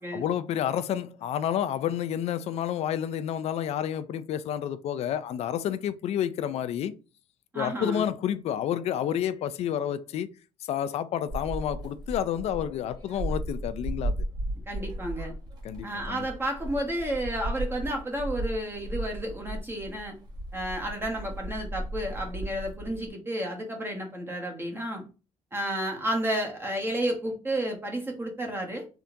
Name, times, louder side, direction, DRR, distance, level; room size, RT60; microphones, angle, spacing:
voice 1, 0.1-7.0 7.5-10.3 10.7-14.2 15.6-16.3, left 10 dB, 60° left, 0.4 m, -30 dB
voice 2, 7.5-8.1 14.7-15.3 15.8-20.1 20.5-25.0 25.5-28.9, right 1 dB, 20° right, 0.9 m, -31 dB
sound 1, 11.3-23.1, right 1 dB, 35° right, 1.2 m, -35 dB
3.4 x 2.8 x 2.5 m
cardioid pair, 125°, 12 cm